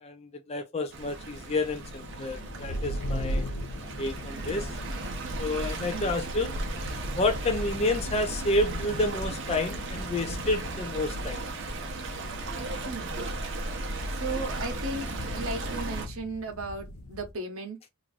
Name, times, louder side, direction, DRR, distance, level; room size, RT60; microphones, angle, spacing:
voice 1, 0.0-3.5 4.0-4.7 5.4-6.5 7.2-11.4, left 2 dB, 30° left, 0.5 m, -29 dB
sound 1, 0.9-17.3, equal, 80° left, 0.6 m, -40 dB
Stream, 0.9-16.1, right 2 dB, 55° right, 0.9 m, -35 dB
voice 2, 5.9-6.3 12.8-13.2 14.1-15.1 15.3-17.9, right 2 dB, 80° right, 1.1 m, -36 dB
3.0 x 2.6 x 3.6 m
head